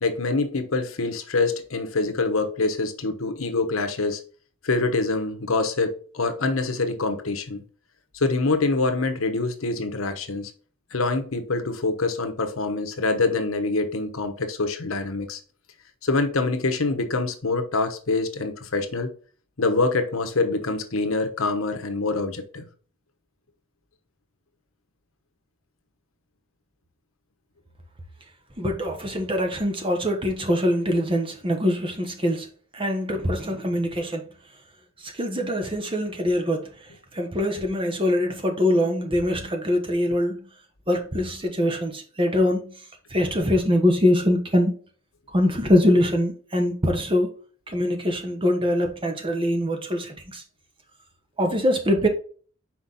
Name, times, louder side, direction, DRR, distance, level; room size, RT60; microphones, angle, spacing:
voice 1, 0.0-4.2 4.6-7.6 8.1-10.5 10.9-15.4 16.0-19.1 19.6-22.6, left 3 dB, 80° left, 1.1 m, -25 dB
voice 2, 28.6-32.5 32.7-34.2 35.0-40.4 40.9-42.7 43.1-44.7 45.3-47.3 47.7-50.4 51.4-52.1, left 1 dB, 25° right, 1.2 m, -23 dB
5.9 x 4.6 x 4.1 m
head